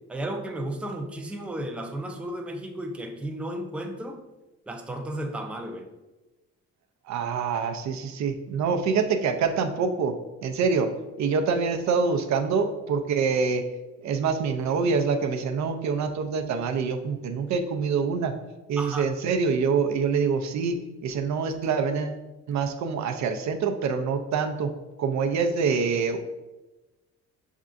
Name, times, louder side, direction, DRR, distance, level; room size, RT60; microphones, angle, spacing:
voice 1, 0.1-4.2 4.7-5.9 18.8-19.1, right 1 dB, 5° right, 3 dB, 0.4 m, -34 dB
voice 2, 7.1-10.9 11.2-13.6 14.0-18.3 18.7-22.2 22.5-24.7 25.0-26.2, right 5 dB, 65° right, 6 dB, 0.5 m, -25 dB
5.4 x 3.6 x 2.5 m, 1.1 s
cardioid pair, 90°, 30 cm